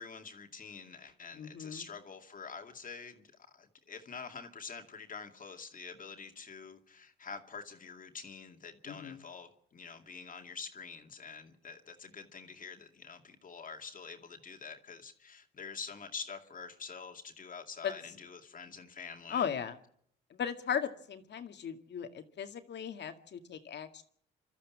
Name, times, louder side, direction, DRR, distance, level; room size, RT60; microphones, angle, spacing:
voice 1, 0.0-19.5, left 5 dB, 45° left, 5 dB, 2.4 m, -46 dB
voice 2, 1.3-1.8 8.9-9.2 17.8-17.9 19.3-19.8 20.3-24.0, left 8 dB, 60° left, 7 dB, 2.1 m, -37 dB
28.5 x 13.5 x 7.4 m, 0.65 s
cardioid pair, 90°, 20 cm